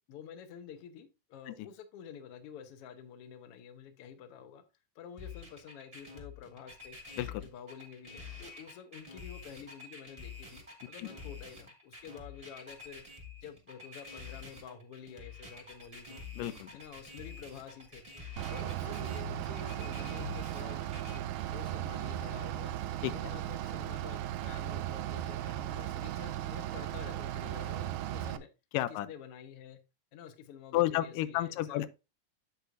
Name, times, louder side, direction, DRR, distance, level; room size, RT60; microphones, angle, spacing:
voice 1, 0.1-4.6 4.9-7.0 7.4-10.6 10.9-13.0 13.4-16.2 16.7-18.0 18.5-22.7 23.1-28.5 28.9-29.8 30.1-31.9, left 7 dB, 65° left, 1.6 m, -49 dB
sound 1, 5.2-21.2, left 4 dB, 15° right, 1.1 m, -47 dB
voice 2, 16.4-16.8 23.0-23.1 28.7-29.1 30.7-31.9, left 14 dB, 85° left, 2.2 m, -31 dB
Bus / Idling, 18.4-28.4, right 12 dB, 80° right, 2.0 m, -37 dB
8.1 x 7.8 x 2.5 m
omnidirectional pair, 3.7 m